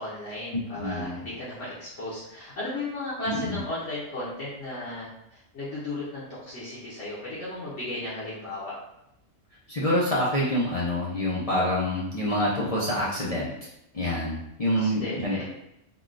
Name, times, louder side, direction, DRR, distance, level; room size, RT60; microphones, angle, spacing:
voice 1, 0.0-8.8 14.7-15.4, left 1 dB, 65° left, -9 dB, 1.1 m, -35 dB
voice 2, 0.7-1.2 3.3-3.6 9.7-13.5 13.9-15.4, left 1 dB, 50° left, -7 dB, 0.4 m, -26 dB
3.6 x 2.3 x 2.4 m, 0.84 s
omnidirectional pair, 1.3 m